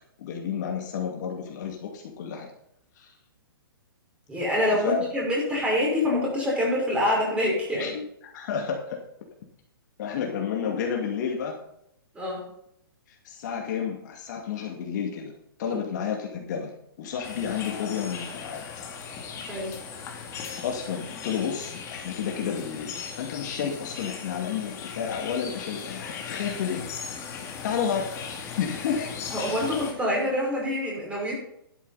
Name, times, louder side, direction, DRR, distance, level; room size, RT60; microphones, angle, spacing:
voice 1, 0.2-2.5 3.0-3.1 4.8-5.1 7.7-9.0 10.0-11.6 13.2-15.3 15.6-16.7 17.0-18.6 20.6-26.8 27.6-28.1 28.6-29.1, left 7 dB, 50° left, 0 dB, 2.5 m, -31 dB
voice 2, 4.3-7.9 12.1-12.5 15.7-15.8 19.3-19.7 29.3-31.3, left 1 dB, 10° right, -3 dB, 5.5 m, -26 dB
sound 1, 17.2-29.9, left 6 dB, 25° left, 2.3 m, -38 dB
12.0 x 10.0 x 4.2 m, 0.74 s
hypercardioid pair, 140°, 12 cm